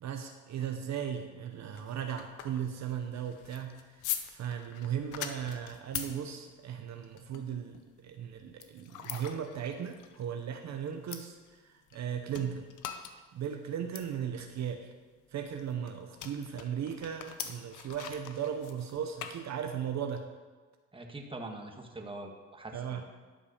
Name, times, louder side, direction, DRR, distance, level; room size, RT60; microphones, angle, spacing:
voice 1, 0.0-4.0 4.3-11.4 11.6-12.7 13.3-14.9 15.3-20.2 22.7-23.0, right 8 dB, 60° right, 5 dB, 0.9 m, -37 dB
sound 1, 1.5-12.0 12.3-20.0, left 10 dB, 90° left, 0.8 m, -45 dB
sound 2, 5.8-6.7 7.6-7.8 8.6-9.6 10.4-10.5 10.8-10.9 11.1-11.6 12.3-12.6 12.9-13.0 13.2-13.3 13.5-13.6 14.0-14.4 15.4-15.9 17.3-18.0 18.6-18.7, left 6 dB, 50° left, 1.1 m, -43 dB
voice 2, 20.9-23.0, right 2 dB, 15° right, 3 dB, 1.5 m, -43 dB
11.0 x 5.4 x 6.6 m, 1.3 s
cardioid pair, 90°, 30 cm